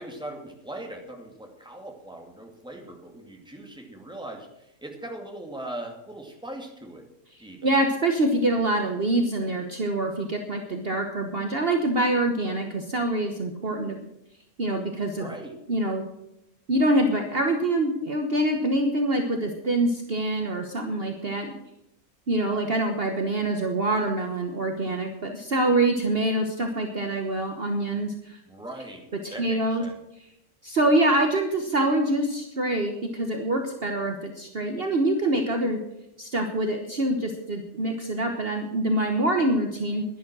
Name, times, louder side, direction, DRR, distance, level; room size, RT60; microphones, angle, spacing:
voice 1, 0.0-7.1 7.4-7.7 15.2-15.6 28.5-30.0, right 1 dB, 5° right, 2 dB, 2.1 m, -40 dB
voice 2, 7.6-14.0 14.6-15.3 15.7-16.0 16.7-21.6 22.3-28.4 29.2-29.8 30.6-35.8 36.2-40.0, right 1 dB, 45° right, 4 dB, 1.3 m, -25 dB
11.5 x 11.0 x 6.1 m, 0.85 s
omnidirectional pair, 1.5 m